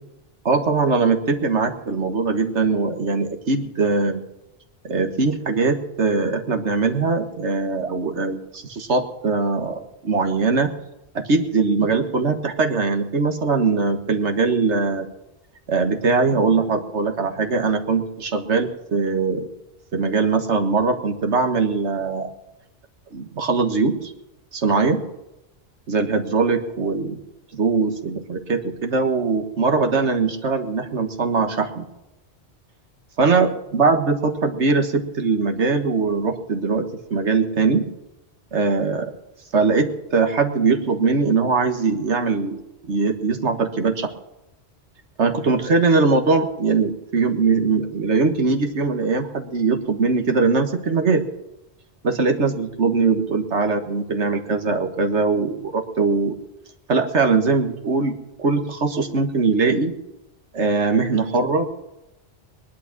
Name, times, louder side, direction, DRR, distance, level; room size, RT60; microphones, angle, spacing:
voice 1, 0.4-4.2 4.8-10.7 11.1-15.1 15.7-19.5 19.9-22.3 23.1-24.1 24.5-25.0 25.9-27.2 27.5-31.8 33.2-37.8 38.5-39.1 39.5-44.1 45.2-51.2 52.0-56.4 56.9-59.9 60.5-61.7, right 4 dB, 85° right, 5 dB, 1.8 m, -21 dB
20.0 x 11.5 x 6.1 m, 0.95 s
omnidirectional pair, 1.1 m